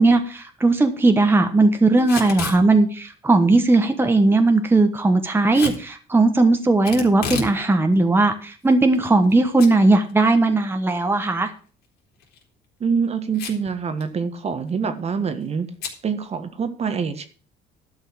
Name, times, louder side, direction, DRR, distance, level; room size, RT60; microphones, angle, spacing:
voice 1, 0.0-11.5, right 2 dB, 15° right, 6 dB, 1.2 m, -18 dB
Packing tape duct tape / Tearing, 2.0-2.6 5.5-5.8 6.8-7.6 7.9-8.0 8.7-9.3 9.6-9.7 10.1-10.2 12.2-12.4 13.3-13.7 14.0-14.1 14.3-14.7 15.8-16.0, left 6 dB, 75° left, 3.4 m, -31 dB
voice 2, 12.8-15.7 16.0-17.3, right 6 dB, 40° right, 9 dB, 1.5 m, -25 dB
11.5 x 5.6 x 7.3 m, 0.40 s
cardioid pair, 110°, 17 cm